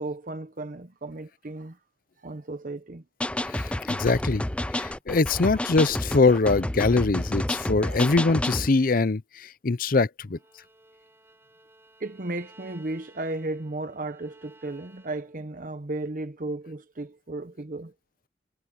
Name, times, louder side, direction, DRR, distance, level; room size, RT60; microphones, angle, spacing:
voice 1, 0.0-1.8 2.2-3.0 3.6-3.8 5.5-5.6 6.3-6.4 7.8-8.2 12.0-17.9, right 2 dB, 50° right, 0.9 m, -35 dB
sound 1, 3.2-8.7, left 1 dB, 5° left, 0.4 m, -29 dB
voice 2, 3.4-4.4 4.7-10.4, left 3 dB, 55° left, 0.6 m, -23 dB
Bowed string instrument, 10.3-15.5, right 2 dB, 15° right, 7.8 m, -56 dB
head